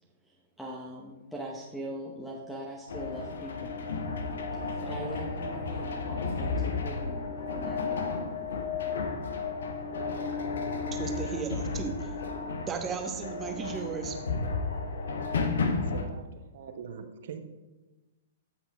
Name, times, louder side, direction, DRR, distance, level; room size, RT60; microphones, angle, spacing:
voice 1, 0.2-3.7 4.8-7.2 7.5-8.5, right 1 dB, 5° left, -2 dB, 0.9 m, -41 dB
sound 1, 2.9-16.1, left 4 dB, 65° left, 0.8 m, -33 dB
voice 2, 10.9-12.1 12.6-14.2, right 7 dB, 20° right, 4 dB, 1.0 m, -35 dB
voice 3, 15.9-17.4, right 7 dB, 55° right, 7 dB, 0.8 m, -43 dB
15.5 x 5.9 x 2.3 m, 1.2 s
figure-of-eight pair, 110°, 0 cm